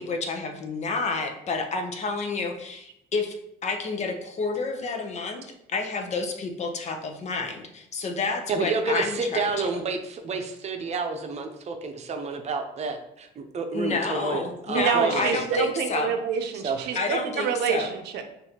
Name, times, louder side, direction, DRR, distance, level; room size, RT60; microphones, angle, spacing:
voice 1, 0.0-3.4 3.6-5.4 5.7-9.7 13.7-16.1 16.9-17.9, left 4 dB, 40° left, 4 dB, 0.7 m, -29 dB
voice 2, 8.5-15.4 16.6-16.9, right 4 dB, 40° right, 5 dB, 0.7 m, -29 dB
voice 3, 14.7-18.3, right 7 dB, 80° right, 6 dB, 0.6 m, -27 dB
6.3 x 2.6 x 2.8 m, 0.81 s
cardioid pair, 110°, 17 cm